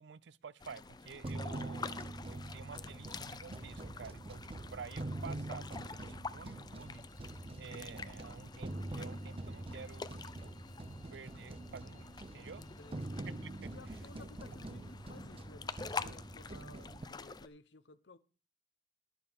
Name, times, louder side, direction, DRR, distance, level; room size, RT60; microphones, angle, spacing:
voice 1, 0.0-4.4 4.7-7.0 7.6-10.5 11.1-12.1 12.3-12.6 13.4-13.7, right 5 dB, 85° right, 0.5 m, -50 dB
sound 1, 0.6-17.5, left 4 dB, 25° left, 0.5 m, -47 dB
sound 2, 1.2-17.1, right 2 dB, 35° right, 0.6 m, -45 dB
sound 3, 6.7-15.5, left 6 dB, 55° left, 1.9 m, -70 dB
voice 2, 12.6-13.2 13.7-18.2, left 3 dB, 80° left, 0.8 m, -57 dB
21.0 x 7.1 x 3.5 m
head